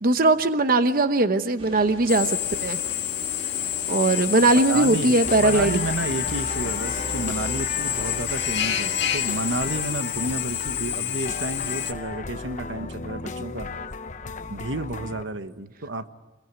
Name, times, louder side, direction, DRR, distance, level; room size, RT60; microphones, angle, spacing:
voice 1, 0.0-2.8 3.9-5.9, right 2 dB, 50° right, 10 dB, 0.9 m, -20 dB
sound 1, 1.6-10.0, right 1 dB, 30° right, 2.0 m, -43 dB
Drill, 2.1-11.9, left 11 dB, 65° left, 1.9 m, -28 dB
voice 2, 4.7-13.7 14.5-16.1, right 2 dB, 85° right, 10 dB, 1.3 m, -31 dB
sound 2, 5.2-15.2, left 3 dB, 40° left, 0.9 m, -35 dB
25.5 x 22.0 x 9.6 m, 1.2 s
head